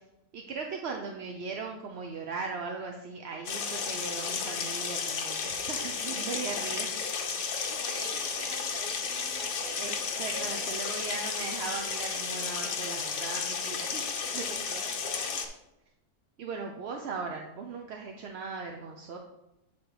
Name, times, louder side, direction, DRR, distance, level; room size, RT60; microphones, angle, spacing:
voice 1, 0.3-7.0 9.8-14.0 14.3-14.5 16.4-19.2, right 4 dB, 60° right, 2 dB, 0.7 m, -38 dB
sound 1, 3.5-15.5, left 5 dB, 55° left, 1.0 m, -33 dB
voice 2, 7.7-10.7 14.2-15.4, right 2 dB, 40° right, 3 dB, 1.0 m, -46 dB
8.5 x 3.8 x 4.7 m, 0.92 s
omnidirectional pair, 1.6 m